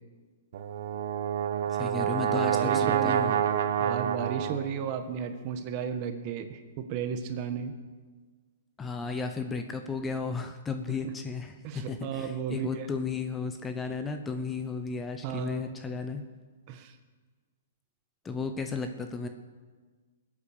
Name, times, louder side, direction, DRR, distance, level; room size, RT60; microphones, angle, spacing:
Brass instrument, 0.5-4.8, right 9 dB, 60° right, 1.1 m, -28 dB
voice 1, 1.7-3.4 8.8-16.2 18.2-19.3, left 4 dB, 10° left, 7 dB, 0.9 m, -34 dB
voice 2, 2.2-3.4 3.8-7.7 11.6-12.9 15.2-15.8 16.7-16.9, right 7 dB, 35° right, 8 dB, 1.4 m, -34 dB
20.5 x 8.8 x 6.7 m, 1.5 s
hypercardioid pair, 155°, 0 cm